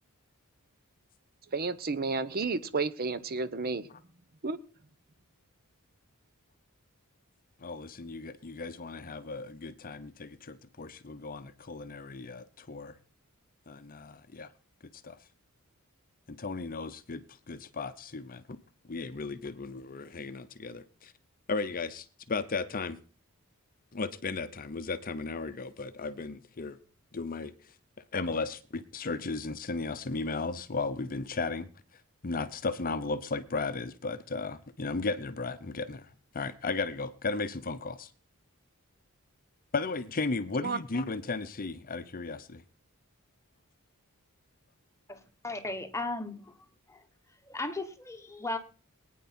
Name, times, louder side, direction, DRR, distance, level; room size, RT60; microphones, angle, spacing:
voice 1, 1.5-3.9 4.4-4.6 40.6-40.8, right 4 dB, 45° right, 14 dB, 0.8 m, -31 dB
voice 2, 7.6-13.0 13.7-14.5 15.0-15.2 16.3-18.4 18.8-21.1 21.5-23.0 23.9-26.8 27.1-27.7 28.1-31.7 32.2-38.1 39.7-42.6, left 3 dB, 40° left, 12 dB, 0.7 m, -35 dB
voice 3, 45.1-46.6 46.9-47.0 47.5-48.6, left 2 dB, 15° left, 7 dB, 1.2 m, -36 dB
21.5 x 9.3 x 4.3 m, 0.40 s
head